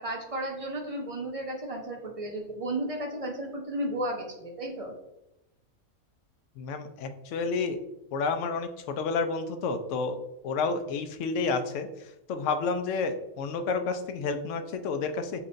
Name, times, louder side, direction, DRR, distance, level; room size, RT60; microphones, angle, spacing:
voice 1, 0.0-4.9, right 1 dB, 50° right, 1 dB, 0.4 m, -33 dB
voice 2, 6.6-7.8 8.1-10.2 10.4-15.4, left 4 dB, 70° left, 8 dB, 0.8 m, -30 dB
7.0 x 2.6 x 2.5 m, 0.88 s
omnidirectional pair, 1.4 m